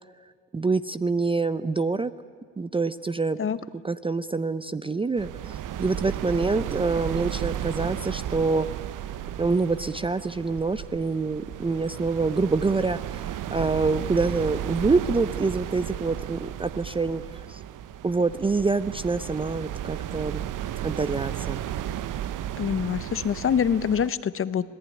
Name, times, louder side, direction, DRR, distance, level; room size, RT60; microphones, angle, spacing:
voice 1, 0.5-2.1 2.6-3.4 3.8-8.7 9.4-17.6 18.0-20.4 20.8-21.6, right 3 dB, 15° right, 14 dB, 0.5 m, -26 dB
sound 1, 5.2-24.1, right 11 dB, 55° right, 0.9 m, -34 dB
sound 2, 10.4-11.9 12.3-12.7 13.0-14.0 14.6-16.9 17.3-17.5 18.6-18.7 20.8-20.9 21.3-22.2, right 5 dB, 80° right, 4.1 m, -47 dB
voice 2, 22.6-24.7, left 8 dB, 35° left, 16 dB, 0.9 m, -25 dB
26.5 x 18.5 x 10.0 m, 2.1 s
cardioid pair, 110°, 37 cm